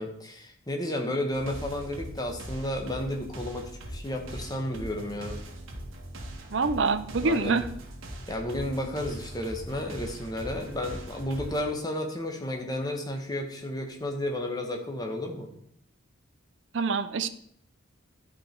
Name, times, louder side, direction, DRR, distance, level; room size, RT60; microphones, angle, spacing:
voice 1, 0.0-5.4 7.2-7.6 8.3-15.5, left 1 dB, 20° left, 3 dB, 1.2 m, -32 dB
sound 1, 1.3-11.6, right 1 dB, 80° right, 1.6 m, -41 dB
voice 2, 6.5-7.7 16.7-17.3, right 4 dB, 60° right, 12 dB, 0.6 m, -26 dB
11.5 x 5.1 x 4.5 m, 0.68 s
head